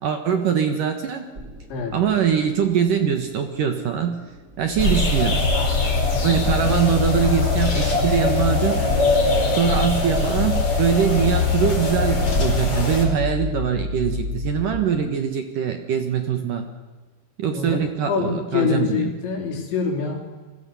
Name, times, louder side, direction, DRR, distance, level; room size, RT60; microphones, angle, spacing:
voice 1, 0.0-1.3 1.9-4.2 4.6-5.4 6.2-8.8 9.6-16.7 17.4-19.1, right 7 dB, 60° right, 6 dB, 2.5 m, -22 dB
sound 1, 1.3-14.8, left 2 dB, 20° right, 2.8 m, -34 dB
sound 2, 4.8-13.1, left 3 dB, 30° left, 5.1 m, -21 dB
voice 2, 17.5-20.2, left 6 dB, 75° left, 1 dB, 6.3 m, -25 dB
30.0 x 22.0 x 7.0 m, 1.3 s
omnidirectional pair, 5.3 m